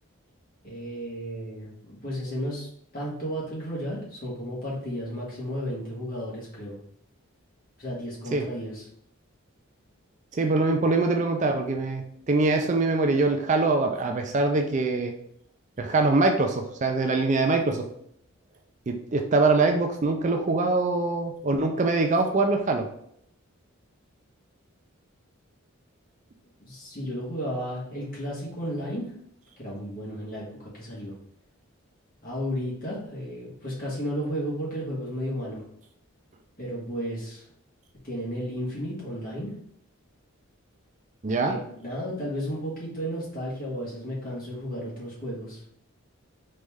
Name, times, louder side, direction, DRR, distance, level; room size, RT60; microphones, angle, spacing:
voice 1, 0.6-2.7 2.9-6.8 7.8-8.9 26.6-29.1 29.6-31.2 32.2-35.6 36.6-37.5 38.0-39.5 41.4-45.6, equal, 40° left, -5 dB, 1.8 m, -33 dB
voice 2, 10.3-15.1 15.8-17.8 18.9-22.9 41.2-41.6, right 3 dB, 35° right, 4 dB, 0.4 m, -23 dB
4.0 x 3.3 x 3.5 m, 0.70 s
head